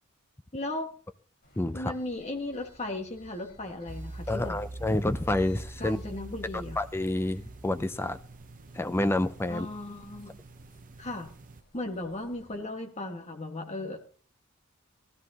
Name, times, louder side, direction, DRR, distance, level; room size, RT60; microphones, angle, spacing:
voice 1, 0.5-0.9 1.7-4.6 5.8-6.8 9.5-10.3 11.0-11.3 11.7-14.0, left 2 dB, 30° left, 4 dB, 1.7 m, -36 dB
sound 1, 1.4-12.6, left 1 dB, 50° left, 5.2 m, -59 dB
voice 2, 1.6-1.9 4.3-6.0 6.8-8.2 8.7-9.7, left 1 dB, 10° left, 11 dB, 0.4 m, -28 dB
sound 2, 3.9-11.6, right 2 dB, 40° right, 0.7 m, -44 dB
16.0 x 13.0 x 2.9 m, 0.43 s
head